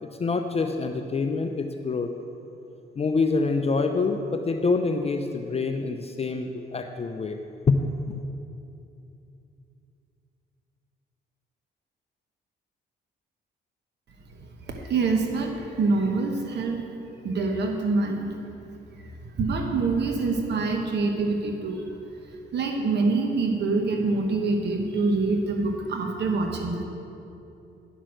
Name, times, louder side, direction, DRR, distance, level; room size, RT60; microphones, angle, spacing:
voice 1, 0.2-2.1 3.0-7.4 7.7-7.8 8.1-8.2, left 4 dB, 30° left, 6 dB, 0.5 m, -26 dB
voice 2, 14.3-16.9 17.2-18.3 19.0-21.9 22.3-26.8, right 3 dB, 60° right, 2 dB, 1.1 m, -26 dB
10.0 x 6.1 x 6.3 m, 2.8 s
cardioid pair, 90°, 20 cm